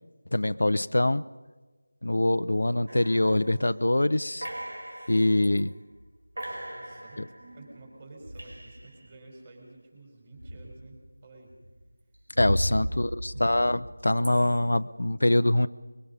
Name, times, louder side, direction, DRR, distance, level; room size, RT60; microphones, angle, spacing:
voice 1, 0.3-1.2 2.0-4.5 5.1-5.7 12.4-15.7, left 1 dB, 75° left, 13 dB, 0.7 m, -24 dB
sound 1, 2.9-3.8 4.4-5.6 6.0-6.1 6.4-9.1 10.4-11.1 11.5-14.6, equal, 80° right, 4.9 m, -36 dB
voice 2, 6.3-11.5 12.9-13.1, right 2 dB, 20° right, 1 dB, 4.3 m, -51 dB
23.5 x 22.5 x 5.4 m, 1.3 s
figure-of-eight pair, 175°, 0 cm